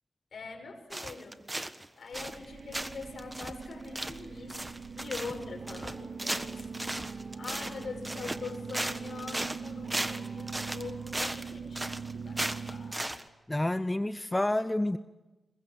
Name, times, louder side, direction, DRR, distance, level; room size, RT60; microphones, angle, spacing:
voice 1, 0.3-1.4 2.0-6.7 7.4-13.0, left 4 dB, 70° left, 4 dB, 6.7 m, -43 dB
sound 1, 0.9-1.9 2.1-2.5 2.7-13.2, right 1 dB, 20° right, 1.4 m, -36 dB
sound 2, 2.1-12.9, right 5 dB, 60° right, 2.0 m, -42 dB
sound 3, 5.0-11.0, right 2 dB, 40° right, 7.4 m, -52 dB
voice 2, 13.5-15.0, left 1 dB, 15° left, 12 dB, 0.8 m, -29 dB
27.0 x 22.5 x 7.8 m, 1.1 s
cardioid pair, 60°, 0 cm